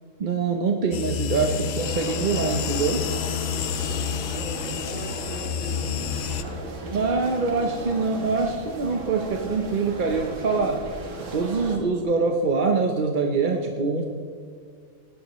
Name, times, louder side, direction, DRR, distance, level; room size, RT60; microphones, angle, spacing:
voice 1, 0.2-3.1 6.9-10.8 11.3-14.1, right 4 dB, 45° right, 3 dB, 0.8 m, -24 dB
sound 1, 0.9-6.4, left 8 dB, 65° left, 0.8 m, -29 dB
sound 2, 1.8-11.8, right 2 dB, 65° right, 1.7 m, -36 dB
voice 2, 4.3-8.2, right 1 dB, 5° left, -4 dB, 3.0 m, -41 dB
17.0 x 11.5 x 3.1 m, 2.2 s
omnidirectional pair, 1.3 m